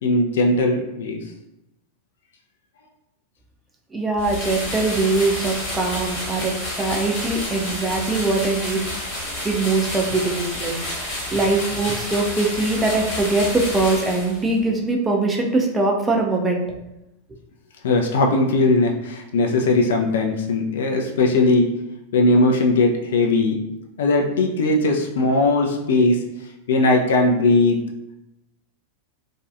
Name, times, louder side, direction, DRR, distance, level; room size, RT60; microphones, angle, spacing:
voice 1, 0.0-1.2 17.8-21.8 22.1-23.6 24.0-26.3 26.7-27.9, left 2 dB, 60° left, 2 dB, 0.3 m, -19 dB
voice 2, 3.9-8.8 9.4-16.6, right 3 dB, 15° right, 0 dB, 0.4 m, -22 dB
sound 1, 4.2-14.6, left 1 dB, 35° left, 1.1 m, -30 dB
2.5 x 2.2 x 2.4 m, 0.90 s
figure-of-eight pair, 90°, 0 cm